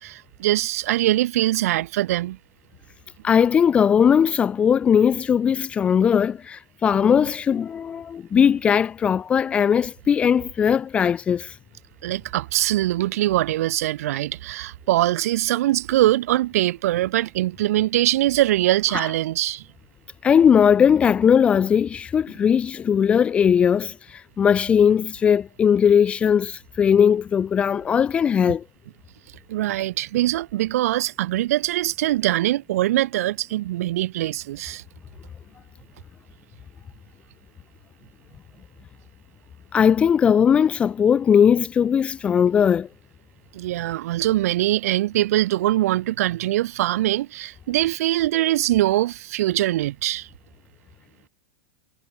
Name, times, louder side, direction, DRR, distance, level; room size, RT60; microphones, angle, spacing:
voice 1, 0.0-2.4 12.0-19.7 29.5-34.8 43.5-50.3, right 15 dB, 55° right, 3.3 m, -22 dB
voice 2, 3.2-11.6 18.9-19.1 20.2-28.6 39.7-42.9, left 7 dB, 10° left, 0.7 m, -19 dB
supercardioid pair, 175°, 10 cm